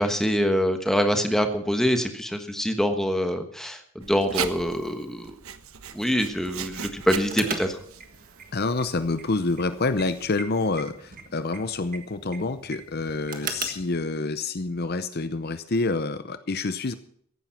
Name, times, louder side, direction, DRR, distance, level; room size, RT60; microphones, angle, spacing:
voice 1, 0.0-5.3 5.9-7.8, equal, ahead, 6 dB, 1.2 m, -25 dB
Writing, 4.0-10.3, right 7 dB, 75° right, 1.0 m, -38 dB
sound 1, 7.3-13.9, right 5 dB, 40° right, 1.6 m, -39 dB
voice 2, 8.5-16.9, left 3 dB, 45° left, 11 dB, 0.7 m, -27 dB
15.0 x 11.0 x 5.8 m, 0.65 s
head